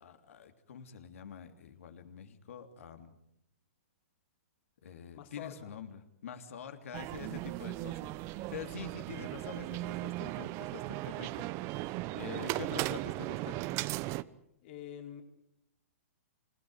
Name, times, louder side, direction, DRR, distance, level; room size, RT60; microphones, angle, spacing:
voice 1, 0.0-3.1 4.8-13.6, left 7 dB, 70° left, 7 dB, 3.1 m, -46 dB
voice 2, 5.1-5.7 14.6-15.2, left 10 dB, 50° left, 5 dB, 3.9 m, -46 dB
sound 1, 6.9-14.2, right 18 dB, 35° right, 0.9 m, -37 dB
27.5 x 17.0 x 9.5 m, 0.78 s
hypercardioid pair, 120°, 8 cm